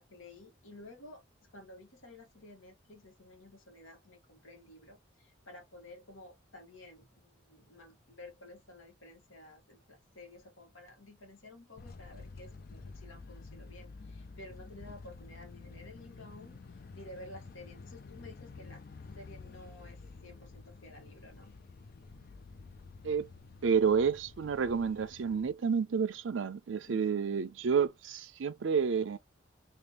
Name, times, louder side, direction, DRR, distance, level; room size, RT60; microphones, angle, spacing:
voice 1, 0.0-18.8 19.1-21.6 26.9-27.4, left 2 dB, 85° left, 1.6 m, -53 dB
sound 1, 11.8-25.5, left 4 dB, 50° left, 0.4 m, -50 dB
voice 2, 23.6-29.2, right 6 dB, 70° right, 0.4 m, -30 dB
3.0 x 2.8 x 3.3 m
head